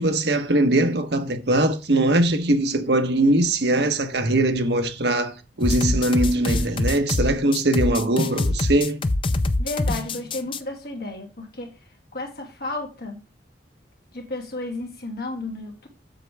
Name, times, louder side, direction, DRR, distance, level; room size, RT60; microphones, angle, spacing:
voice 1, 0.0-9.0, right 1 dB, 65° right, 1.1 m, -21 dB
sound 1, 5.6-10.6, left 2 dB, 30° left, 0.5 m, -24 dB
voice 2, 9.6-11.7 12.1-13.2 14.1-15.9, left 2 dB, 55° left, 2.5 m, -33 dB
7.8 x 6.9 x 3.4 m
head